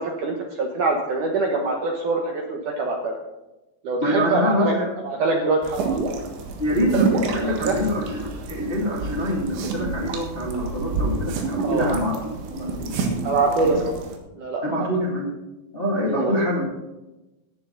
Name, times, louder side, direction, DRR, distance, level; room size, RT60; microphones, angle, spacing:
voice 1, 0.0-3.2 3.8-4.7 5.0-6.1 7.4-7.8 11.6-11.9 13.2-13.9 14.4-14.9 16.1-16.3, right 3 dB, 70° right, 1 dB, 2.1 m, -24 dB
voice 2, 4.0-4.8 6.6-13.1 13.6-13.7 14.6-15.3 15.7-16.6, equal, 25° left, -3 dB, 1.2 m, -25 dB
sound 1, 5.6-14.2, right 3 dB, 85° right, 3.8 m, -28 dB
14.5 x 9.7 x 4.0 m, 1.0 s
omnidirectional pair, 5.0 m